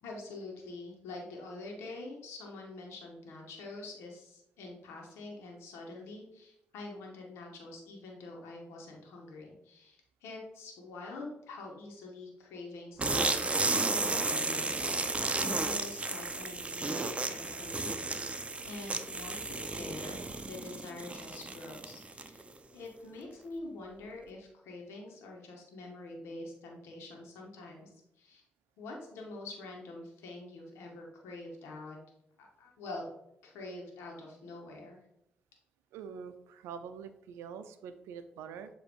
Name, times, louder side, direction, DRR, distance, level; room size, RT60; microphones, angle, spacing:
voice 1, 0.0-22.4 22.7-28.4 28.8-32.0 32.4-33.1 33.4-35.0, left 2 dB, 85° left, 0 dB, 1.4 m, -46 dB
sound 1, 13.0-22.5, right 3 dB, 30° right, 0.7 m, -33 dB
voice 2, 35.9-38.7, right 7 dB, 90° right, 10 dB, 0.5 m, -45 dB
7.5 x 3.0 x 4.7 m, 0.80 s
supercardioid pair, 45°, 4 cm